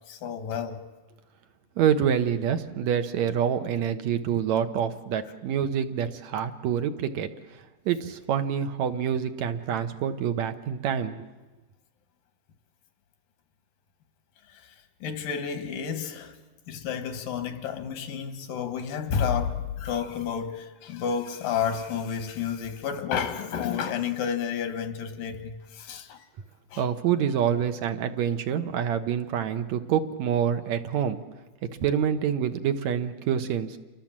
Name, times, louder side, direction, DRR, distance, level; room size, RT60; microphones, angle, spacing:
voice 1, 0.1-0.8 14.5-16.4 16.7-26.3 26.7-26.9, left 7 dB, 90° left, 7 dB, 3.4 m, -31 dB
voice 2, 1.8-7.3 7.9-11.2 26.8-31.2 31.6-33.8, right 8 dB, 65° right, 9 dB, 2.1 m, -26 dB
29.0 x 23.5 x 7.4 m, 1.2 s
omnidirectional pair, 3.8 m